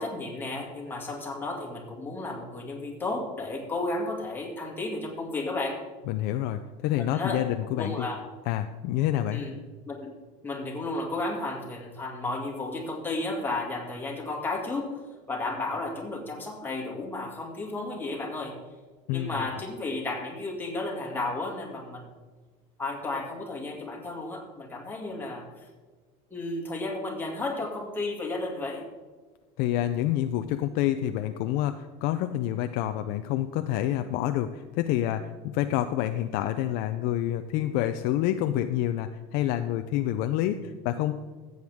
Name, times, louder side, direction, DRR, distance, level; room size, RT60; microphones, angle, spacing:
voice 1, 0.0-5.8 7.0-7.4 7.8-8.2 9.3-9.5 9.9-10.1 10.4-15.0 15.3-18.5 19.1-22.1 22.8-25.7 26.3-28.8, left 2 dB, 10° left, -2 dB, 2.2 m, -33 dB
voice 2, 6.1-8.1 8.5-9.4 19.1-19.4 29.6-41.1, left 12 dB, 60° left, 8 dB, 0.5 m, -28 dB
14.5 x 7.9 x 3.6 m, 1.3 s
cardioid pair, 145°, 17 cm